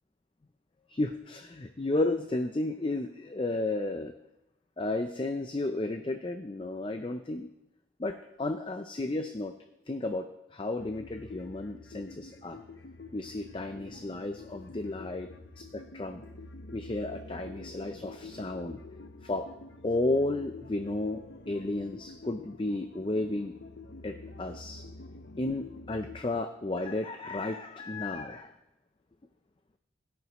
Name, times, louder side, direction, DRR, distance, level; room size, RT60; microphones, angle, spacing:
voice 1, 0.9-4.1 4.8-7.5 8.0-9.5 9.9-12.6 13.1-16.2 16.7-18.8 19.2-19.5 19.8-21.2 21.5-23.5 24.0-24.8 25.4-28.5, left 2 dB, 25° left, 7 dB, 0.5 m, -33 dB
sound 1, 10.8-26.2, left 3 dB, 60° left, 0.7 m, -47 dB
17.0 x 11.0 x 3.0 m, 0.93 s
head